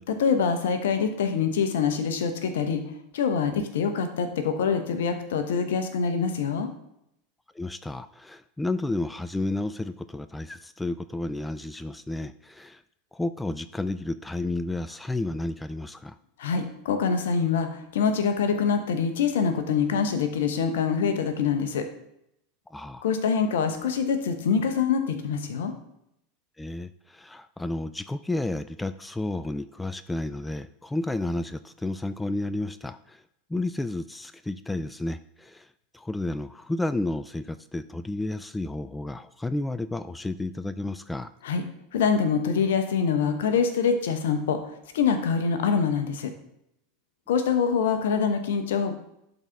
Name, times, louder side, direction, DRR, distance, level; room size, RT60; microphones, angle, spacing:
voice 1, 0.1-2.8 3.1-6.7 16.4-21.8 23.0-25.7 41.4-41.6 41.9-46.3 47.3-48.9, left 6 dB, 70° left, 8 dB, 0.9 m, -25 dB
voice 2, 7.5-12.8 13.1-16.2 22.7-23.0 26.6-33.2 33.5-35.7 35.9-41.3, left 2 dB, 10° left, 12 dB, 0.3 m, -31 dB
12.0 x 4.0 x 3.4 m, 0.78 s
hypercardioid pair, 85°, 0 cm